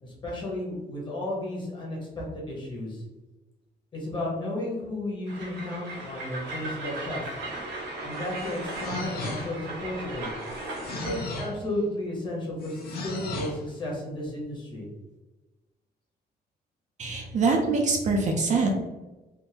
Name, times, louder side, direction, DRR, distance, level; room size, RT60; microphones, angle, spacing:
voice 1, 0.0-3.0 3.9-7.2 8.0-10.3 11.0-14.9, left 1 dB, 25° left, -4 dB, 1.0 m, -33 dB
Train, 5.3-11.3, right 2 dB, 80° right, 1.3 m, -37 dB
sound 1, 8.1-9.7 10.4-11.6 12.6-13.6, left 2 dB, 60° left, 0.6 m, -36 dB
voice 2, 17.0-18.7, right 3 dB, 45° right, 2 dB, 0.4 m, -24 dB
3.5 x 2.6 x 2.8 m, 1.1 s
cardioid pair, 180°, 18 cm